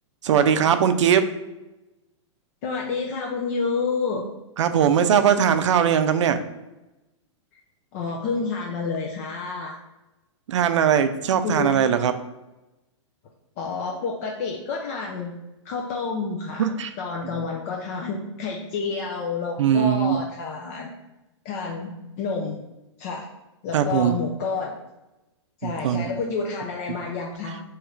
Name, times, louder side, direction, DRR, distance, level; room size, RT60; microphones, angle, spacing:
voice 1, 0.2-1.2 4.6-6.4 10.5-12.1 16.6-16.9 17.3-17.4 19.6-20.2 23.7-24.1 25.6-26.1, right 8 dB, 75° right, 10 dB, 0.4 m, -20 dB
voice 2, 2.6-4.2 7.9-9.8 11.4-11.8 13.6-15.3 15.6-20.9 21.4-22.6 23.0-23.3 23.6-24.8 25.6-27.6, left 4 dB, 30° left, 0 dB, 0.4 m, -29 dB
3.1 x 2.4 x 4.4 m, 0.99 s
hypercardioid pair, 160°, 16 cm